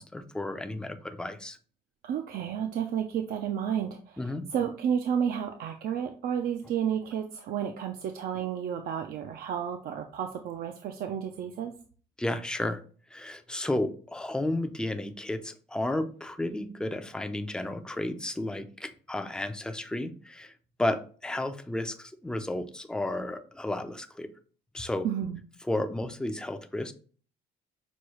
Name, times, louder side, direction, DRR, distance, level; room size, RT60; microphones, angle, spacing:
voice 1, 0.0-1.6 4.2-4.5 12.2-12.8 13.1-20.5 20.8-24.3 24.7-25.1 25.7-26.9, left 1 dB, 5° left, 8 dB, 0.4 m, -32 dB
voice 2, 2.0-11.7 25.0-25.4, right 8 dB, 60° right, 5 dB, 0.5 m, -31 dB
6.1 x 2.3 x 3.0 m, 0.42 s
cardioid pair, 110°, 17 cm